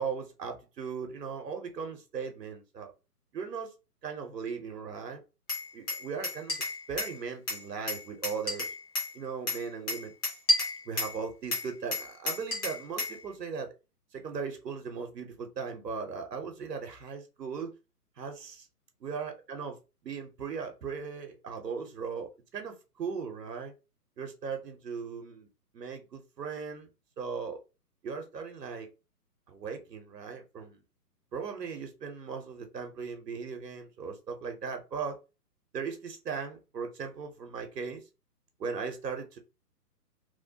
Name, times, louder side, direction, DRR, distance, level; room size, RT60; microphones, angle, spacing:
voice 1, 0.0-2.9 3.3-3.7 4.0-5.2 5.7-6.6 6.9-8.7 9.1-10.1 10.9-13.7 14.1-17.7 18.2-18.7 19.0-19.8 20.0-23.7 24.2-25.5 25.7-26.9 27.2-27.6 28.0-28.9 29.5-30.8 31.3-35.2 35.7-38.0 38.6-39.4, right 5 dB, 80° right, 5 dB, 0.9 m, -38 dB
Glass, 5.5-7.2 7.5-9.1 9.5-11.2 11.5-13.2, left 2 dB, 15° left, 0.7 m, -31 dB
3.0 x 2.1 x 2.7 m, 0.29 s
figure-of-eight pair, 135°, 48 cm